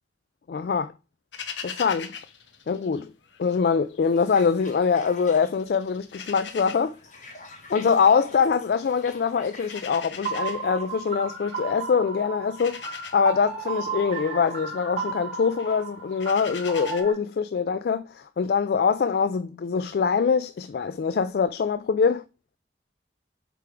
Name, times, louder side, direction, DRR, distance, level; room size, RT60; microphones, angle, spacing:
voice 1, 0.5-0.9 1.6-2.1 2.7-3.1 3.4-6.9 7.7-22.2, left 6 dB, 55° left, 0.3 m, -24 dB
sound 1, 1.3-3.6 3.9-5.2 5.5-17.0, left 7 dB, 85° left, 1.0 m, -42 dB
sound 2, 4.0-11.4, left 2 dB, 40° left, 1.7 m, -47 dB
sound 3, 10.2-17.1, right 4 dB, 35° right, 3.8 m, -34 dB
7.6 x 3.5 x 4.9 m
head